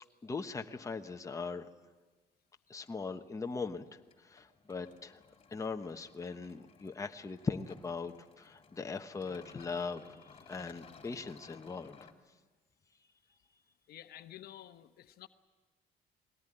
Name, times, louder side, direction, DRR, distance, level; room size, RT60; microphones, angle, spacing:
voice 1, 0.2-1.7 2.7-5.2 5.5-10.2 10.5-12.0, left 4 dB, 20° left, 6 dB, 1.1 m, -40 dB
sound 1, 3.0-12.1, left 5 dB, 35° left, 2.8 m, -59 dB
voice 2, 13.9-15.3, left 12 dB, 65° left, 10 dB, 1.0 m, -51 dB
21.0 x 18.0 x 10.0 m, 1.3 s
cardioid pair, 110°, 17 cm